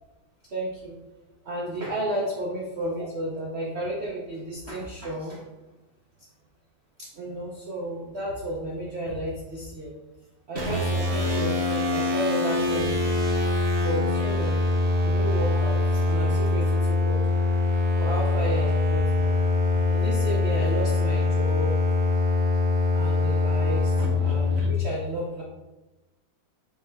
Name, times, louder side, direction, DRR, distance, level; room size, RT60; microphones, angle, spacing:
voice 1, 0.5-0.9 1.4-5.4 7.0-9.9 10.5-13.2 13.8-14.6 15.0-16.7 17.0-17.2 18.0-19.3 19.9-21.8 22.9-25.4, right 1 dB, 80° right, -3 dB, 0.5 m, -32 dB
sound 1, 10.5-24.7, left 3 dB, 45° right, 0.9 m, -23 dB
4.7 x 3.2 x 3.3 m, 1.0 s
omnidirectional pair, 2.1 m